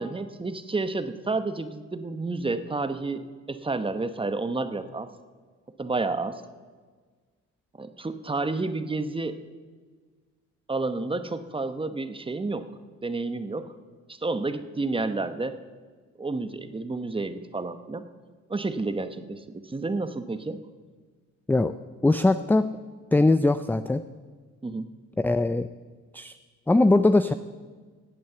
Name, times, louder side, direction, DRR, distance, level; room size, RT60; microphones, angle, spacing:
voice 1, 0.0-5.1 5.8-6.4 7.8-9.4 10.7-12.7 13.0-13.7 14.1-15.6 16.2-18.1 18.5-20.6 24.6-25.0, right 3 dB, 15° right, 10 dB, 1.0 m, -30 dB
voice 2, 22.0-22.7 23.1-24.0 25.2-25.7 26.1-26.3 26.7-27.3, left 2 dB, 5° left, 11 dB, 0.4 m, -21 dB
17.0 x 8.6 x 6.9 m, 1.5 s
cardioid pair, 90°, 30 cm